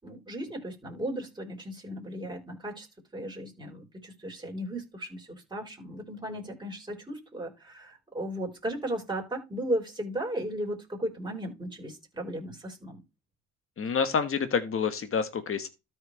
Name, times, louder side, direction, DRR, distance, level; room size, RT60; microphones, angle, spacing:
voice 1, 0.0-2.9 3.1-13.0, right 1 dB, 15° right, 4.0 m, -36 dB
voice 2, 13.8-15.7, left 6 dB, 45° left, 1.4 m, -28 dB
13.5 x 4.6 x 3.3 m
cardioid pair, 90°, 30 cm